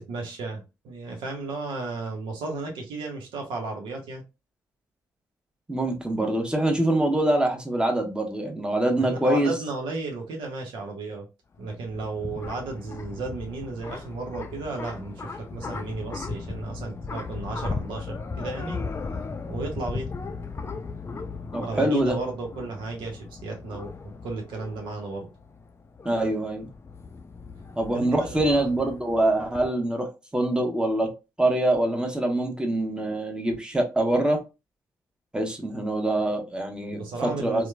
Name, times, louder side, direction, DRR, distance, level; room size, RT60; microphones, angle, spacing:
voice 1, 0.0-4.2 9.0-11.3 11.6-18.8 19.5-20.1 21.5-23.9 24.2-25.3 27.9-28.7 36.9-37.7, right 3 dB, 80° right, 0.7 m, -34 dB
voice 2, 5.7-9.5 21.5-22.2 26.0-26.7 27.8-31.1 31.4-34.4 35.3-37.7, right 1 dB, 10° right, 1.0 m, -24 dB
sound 1, 11.5-29.7, left 4 dB, 30° left, 0.4 m, -37 dB
2.9 x 2.1 x 2.2 m
supercardioid pair, 50°, 8 cm